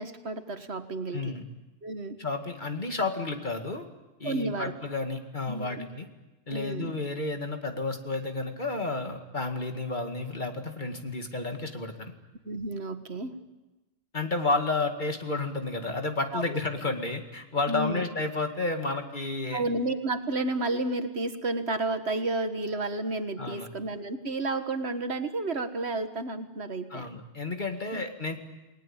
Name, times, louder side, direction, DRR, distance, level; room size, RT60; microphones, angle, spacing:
voice 1, 0.0-1.4 1.8-2.2 4.2-4.7 5.5-5.9 6.5-6.9 12.5-13.3 16.3-16.6 17.7-18.1 19.5-27.1 27.9-28.0, right 2 dB, 65° right, 8 dB, 1.8 m, -31 dB
voice 2, 1.1-1.4 2.2-3.8 4.2-6.1 6.5-12.1 14.1-19.7 23.4-23.7 26.9-28.4, left 3 dB, 40° left, 5 dB, 2.3 m, -31 dB
29.0 x 19.5 x 8.9 m, 1.1 s
omnidirectional pair, 1.2 m